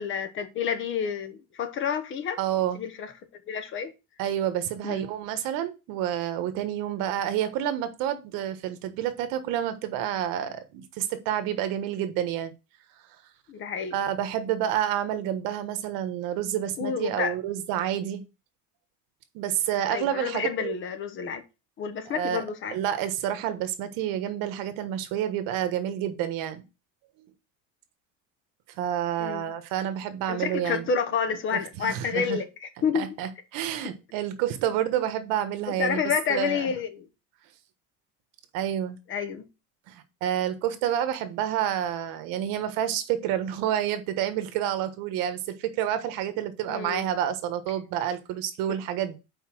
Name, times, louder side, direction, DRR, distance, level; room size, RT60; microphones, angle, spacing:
voice 1, 0.0-2.4 2.7-3.1 3.5-3.9 4.8-5.0 13.5-14.0 16.8-17.4 19.9-21.4 21.8-22.8 29.2-29.4 30.3-33.1 35.8-37.1 39.1-39.5 46.7-47.1, left 7 dB, 35° left, 1.0 m, -29 dB
voice 2, 2.4-2.8 4.2-12.5 13.9-18.2 19.3-20.7 22.1-22.4 22.7-26.6 28.8-30.9 31.5-32.4 32.9-36.0 36.3-36.7 38.5-39.0 39.9-49.2, right 10 dB, 75° right, 1.3 m, -29 dB
5.6 x 4.8 x 6.1 m
cardioid pair, 160°, 34 cm